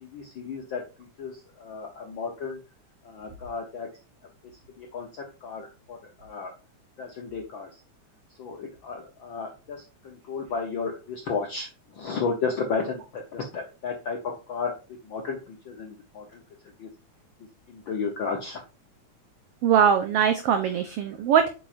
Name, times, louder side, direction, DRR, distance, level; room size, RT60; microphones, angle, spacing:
voice 1, 0.0-2.6 3.0-3.9 4.8-6.5 7.0-7.7 8.4-14.7 15.0-16.4 16.8-16.9 17.7-18.6, left 5 dB, 75° left, 2 dB, 1.1 m, -33 dB
voice 2, 19.6-21.5, right 8 dB, 75° right, 8 dB, 1.4 m, -21 dB
8.5 x 6.0 x 2.5 m, 0.33 s
omnidirectional pair, 3.5 m